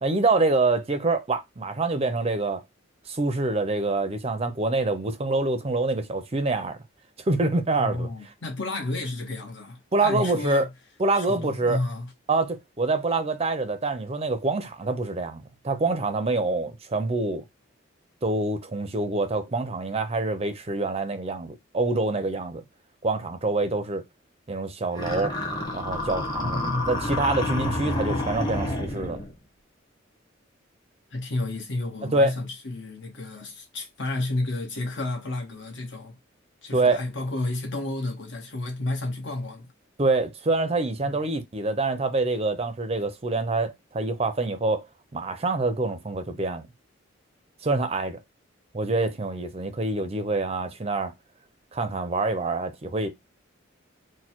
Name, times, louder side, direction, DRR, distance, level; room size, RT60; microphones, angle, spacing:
voice 1, 0.0-2.6 3.1-6.8 7.3-8.1 9.9-10.6 11.0-11.8 12.3-17.4 18.2-22.6 23.0-24.0 24.5-25.3 25.7-29.2 32.1-32.3 36.7-37.0 40.0-44.9 45.1-46.7 47.6-48.2 48.7-51.1 51.7-53.1, right 3 dB, 30° right, 0.5 m, -26 dB
voice 2, 7.8-10.7 11.1-12.1 26.2-27.0 31.1-36.2 36.6-39.7 41.0-41.2, left 2 dB, 60° left, 1.2 m, -31 dB
sound 1, 25.0-29.3, left 1 dB, 20° left, 1.0 m, -29 dB
4.3 x 2.2 x 4.4 m
head